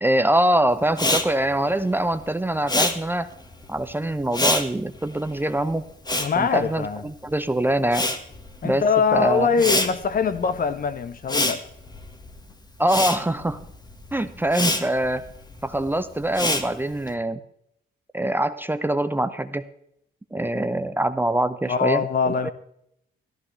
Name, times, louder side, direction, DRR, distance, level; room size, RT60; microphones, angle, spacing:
voice 1, 0.0-3.3 3.7-5.9 6.4-8.1 8.6-8.8 9.1-9.5 12.8-13.6 14.1-15.2 15.6-17.4 18.1-19.7 20.3-22.5, right 1 dB, 10° right, 0.6 m, -24 dB
Respiratory sounds, 0.9-7.4 7.6-17.1, left 1 dB, 20° left, 1.5 m, -27 dB
voice 2, 6.2-7.0 8.6-11.6 21.7-22.5, left 5 dB, 45° left, 1.0 m, -23 dB
14.0 x 13.0 x 3.3 m
cardioid pair, 90°, 20 cm